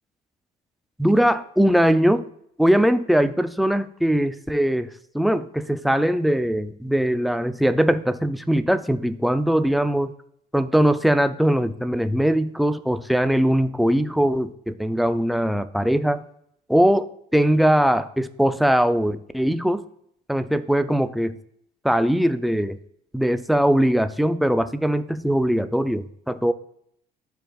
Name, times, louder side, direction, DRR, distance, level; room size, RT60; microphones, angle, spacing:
voice 1, 1.0-2.2 2.6-4.9 5.1-10.1 10.5-16.2 16.7-17.0 17.3-19.8 20.3-21.4 21.8-22.8 23.1-26.5, equal, ahead, 12 dB, 0.3 m, -21 dB
12.5 x 4.6 x 2.3 m, 0.71 s
cardioid pair, 110°, 17 cm